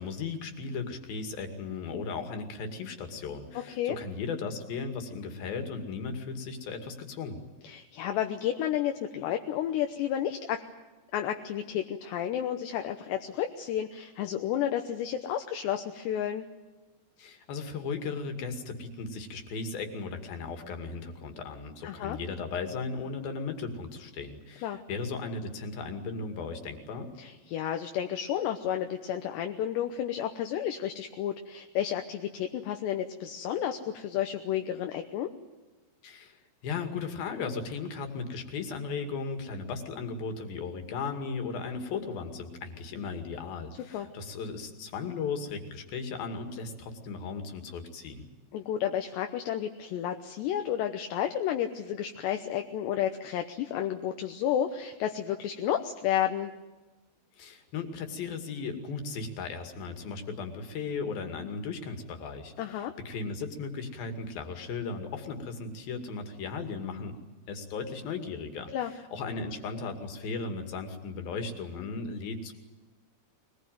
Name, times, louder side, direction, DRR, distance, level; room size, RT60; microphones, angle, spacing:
voice 1, 0.0-7.4 17.2-27.1 36.0-48.3 57.4-67.2 67.5-72.5, left 4 dB, 60° left, 6 dB, 4.0 m, -36 dB
voice 2, 7.6-10.6 11.1-16.5 21.8-22.2 24.6-24.8 27.2-35.3 43.9-44.1 48.5-56.5 62.6-62.9 68.7-68.9, left 10 dB, 75° left, 5 dB, 3.1 m, -31 dB
22.5 x 21.0 x 9.3 m, 1.2 s
omnidirectional pair, 5.1 m